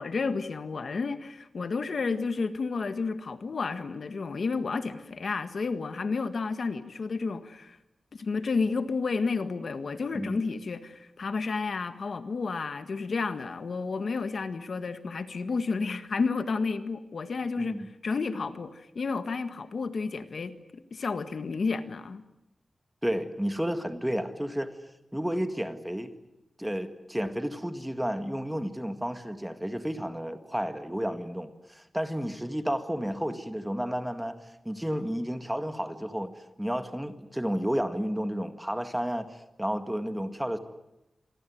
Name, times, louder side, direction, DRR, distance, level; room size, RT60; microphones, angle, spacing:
voice 1, 0.0-7.8 8.1-17.7 18.0-22.2, left 4 dB, 60° left, 10 dB, 1.7 m, -31 dB
voice 2, 17.6-17.9 23.0-24.7 25.1-26.1 26.6-34.4 34.7-36.3 36.6-40.6, equal, 5° right, 9 dB, 1.8 m, -31 dB
27.5 x 23.0 x 9.4 m, 0.92 s
wide cardioid pair, 145°, 0 cm